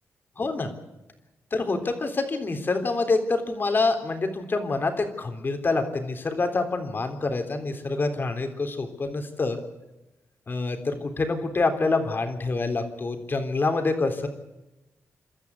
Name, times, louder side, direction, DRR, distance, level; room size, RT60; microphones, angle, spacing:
voice 1, 0.4-0.7 1.5-9.6 10.5-14.3, left 3 dB, 35° left, 6 dB, 3.5 m, -26 dB
29.5 x 13.0 x 8.3 m, 0.99 s
cardioid pair, 100°, 6 cm